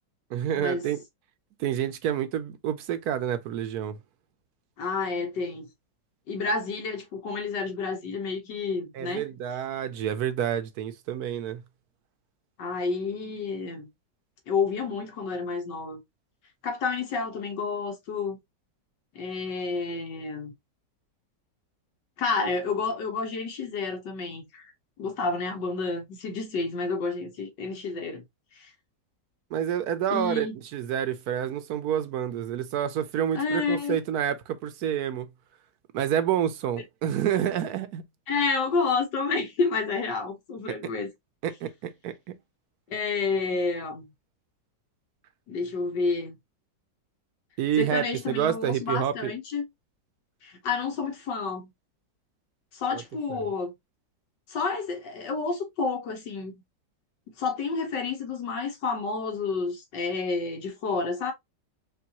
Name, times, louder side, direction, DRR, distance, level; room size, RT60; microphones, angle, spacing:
voice 1, 0.3-1.0 1.6-4.0 8.9-11.6 29.5-35.3 35.9-38.0 41.4-42.3 47.6-49.3 52.9-53.0 53.3-53.4, right 10 dB, 70° right, 1.0 m, -28 dB
voice 2, 4.8-5.7 6.3-9.3 12.6-13.9 14.5-16.0 16.6-18.4 19.2-20.5 22.2-24.7 25.0-28.2 28.6-28.7 30.1-30.6 33.4-34.0 38.3-41.1 42.9-44.1 45.5-46.3 47.8-49.6 50.4-51.7 52.7-53.7 54.5-56.6 57.4-61.3, left 4 dB, 80° left, 1.8 m, -30 dB
5.3 x 2.6 x 2.8 m
omnidirectional pair, 1.9 m